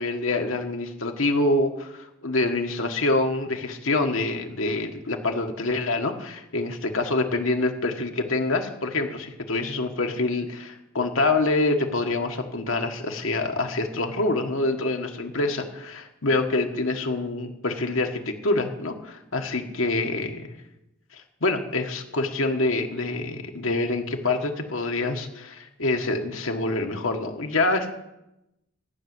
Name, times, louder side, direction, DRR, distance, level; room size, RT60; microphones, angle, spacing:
voice 1, 0.0-20.5 21.4-27.9, left 2 dB, 75° left, 4 dB, 1.5 m, -26 dB
14.0 x 6.3 x 9.5 m, 0.91 s
head